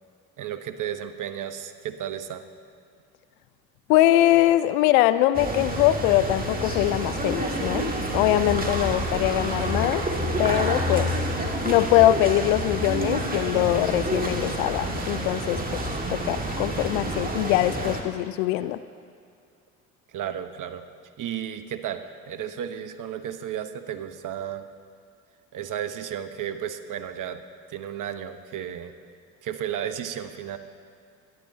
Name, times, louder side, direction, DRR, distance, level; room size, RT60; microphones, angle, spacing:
voice 1, 0.4-2.4 20.1-20.9 21.2-24.7 25.5-27.4 27.7-28.9 29.4-30.6, right 9 dB, 50° right, 9 dB, 1.1 m, -33 dB
voice 2, 3.9-10.0 10.4-11.1 11.6-15.8 16.1-18.8, left 14 dB, 75° left, 14 dB, 0.6 m, -22 dB
sound 1, 5.3-18.0, right 1 dB, 20° right, 1.8 m, -28 dB
24.0 x 10.5 x 2.8 m, 2.4 s
hypercardioid pair, 65°, 40 cm